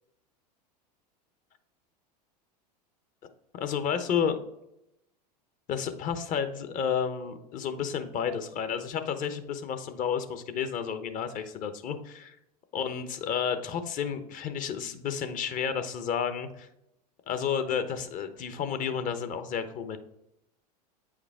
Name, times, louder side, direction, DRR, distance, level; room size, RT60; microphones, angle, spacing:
voice 1, 3.5-4.4 5.7-12.3 12.7-16.7 17.3-20.0, left 7 dB, 40° left, 9 dB, 0.9 m, -31 dB
8.4 x 4.9 x 3.6 m, 0.82 s
hypercardioid pair, 95°, 21 cm